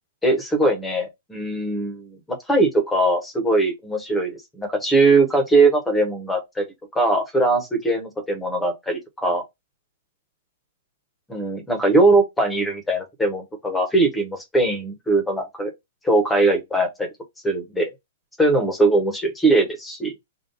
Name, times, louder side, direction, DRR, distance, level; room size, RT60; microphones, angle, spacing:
voice 1, 0.2-6.6 6.9-9.4 11.3-15.7 16.0-17.1 17.4-17.9 18.4-20.1, right 2 dB, 5° left, 0.8 m, -20 dB
3.8 x 2.3 x 3.8 m
hypercardioid pair, 180°, 0 cm